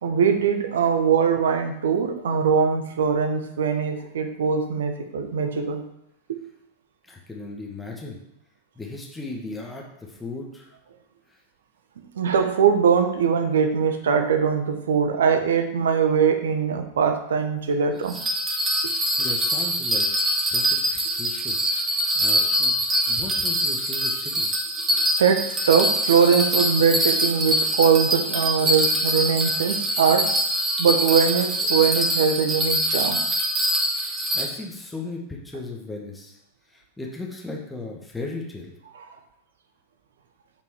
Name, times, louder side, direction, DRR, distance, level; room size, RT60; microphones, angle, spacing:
voice 1, 0.0-5.8 6.3-6.4 12.0-18.2 25.2-30.3 30.8-33.2, right 6 dB, 65° right, 7 dB, 1.1 m, -21 dB
voice 2, 7.0-8.2 8.8-10.7 11.3-11.4 18.9-20.1 20.5-22.7 23.1-24.5 33.8-36.4 36.7-38.7, left 3 dB, 10° left, -1 dB, 1.5 m, -37 dB
Bell, 18.1-34.4, equal, 20° right, 1.6 m, -24 dB
8.1 x 5.4 x 4.8 m, 0.79 s
figure-of-eight pair, 90°, 0 cm